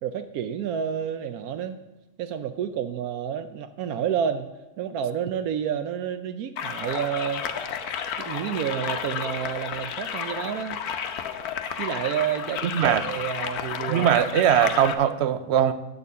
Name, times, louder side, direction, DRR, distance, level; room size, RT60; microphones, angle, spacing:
voice 1, 0.0-1.8 2.2-4.5 4.8-7.7 8.2-10.8 11.8-14.1, right 8 dB, 75° right, 10 dB, 1.1 m, -29 dB
sound 1, 6.6-14.9, left 7 dB, 85° left, 1.3 m, -32 dB
voice 2, 12.6-13.0 13.9-15.7, right 10 dB, 60° right, 13 dB, 0.7 m, -21 dB
8.3 x 6.7 x 8.3 m, 1.0 s
omnidirectional pair, 1.6 m